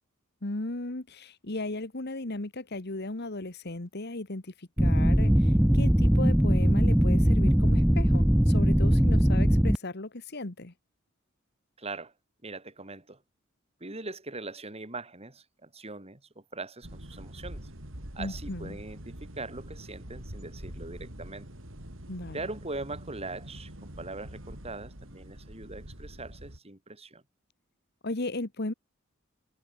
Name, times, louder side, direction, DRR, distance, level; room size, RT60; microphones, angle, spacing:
voice 1, 0.4-10.7 18.2-18.8 22.1-22.4 28.0-28.7, left 2 dB, 55° left, 1.7 m, -36 dB
sound 1, 4.8-9.8, equal, 5° right, 0.3 m, -21 dB
voice 2, 11.8-12.1 12.4-13.2 13.8-17.7 18.1-21.5 22.3-27.2, right 3 dB, 30° right, 3.5 m, -41 dB
sound 2, 16.8-26.6, right 1 dB, 70° right, 4.9 m, -44 dB
head